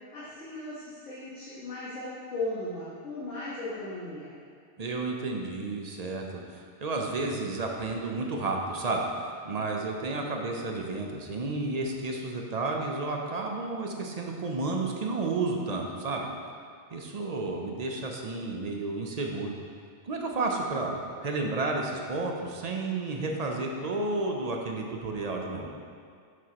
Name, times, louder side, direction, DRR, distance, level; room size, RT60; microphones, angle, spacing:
voice 1, 0.1-4.3, left 2 dB, 85° left, -11 dB, 1.7 m, -37 dB
voice 2, 4.8-16.3 16.9-19.5 20.0-25.7, right 3 dB, 45° right, 1 dB, 0.5 m, -31 dB
7.3 x 6.1 x 2.9 m, 2.2 s
omnidirectional pair, 1.2 m